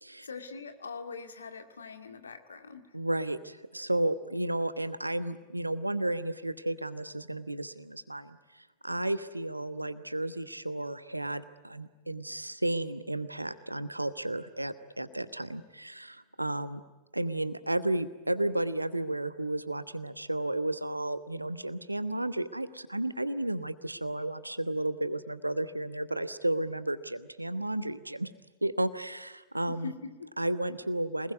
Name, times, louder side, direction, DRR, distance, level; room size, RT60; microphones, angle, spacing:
voice 1, 0.2-2.9 29.6-30.3, left 5 dB, 75° left, 7 dB, 2.1 m, -42 dB
voice 2, 2.9-8.4 8.8-16.8 17.1-28.3 28.6-29.9 30.4-31.3, right 1 dB, 85° right, 14 dB, 1.1 m, -33 dB
27.0 x 20.0 x 9.5 m, 1.2 s
figure-of-eight pair, 90°, 0 cm